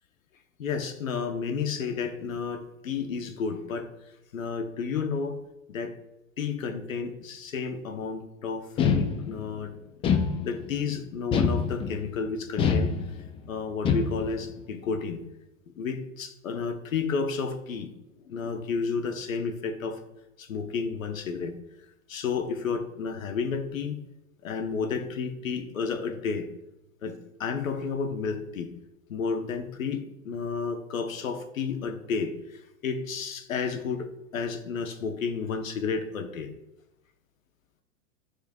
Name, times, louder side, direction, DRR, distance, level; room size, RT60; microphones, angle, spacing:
voice 1, 0.6-3.9 4.3-5.4 5.7-5.9 6.4-9.7 10.4-12.9 13.5-15.2 15.8-17.9 18.2-20.0 20.4-21.5 22.1-24.0 24.4-26.5 27.0-28.7 29.1-36.5, left 5 dB, 85° left, 7 dB, 1.0 m, -31 dB
sound 1, 8.8-9.5 10.0-10.8 11.3-12.1 12.6-13.4 13.8-14.4, left 6 dB, 15° left, 0.3 m, -25 dB
10.5 x 4.8 x 2.3 m, 0.94 s
hypercardioid pair, 110°, 39 cm